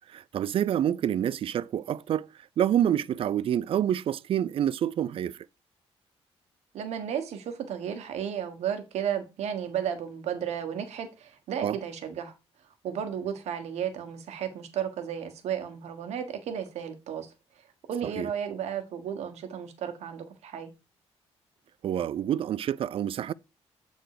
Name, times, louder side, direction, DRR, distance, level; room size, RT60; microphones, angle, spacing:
voice 1, 0.1-2.3 2.6-5.5 11.6-11.8 18.2-18.3 21.8-23.3, right 10 dB, 55° right, 0.4 m, -27 dB
voice 2, 6.7-12.3 12.8-17.3 17.9-20.7, right 8 dB, 85° right, 1.4 m, -33 dB
8.1 x 3.9 x 4.8 m
cardioid pair, 115°, 11 cm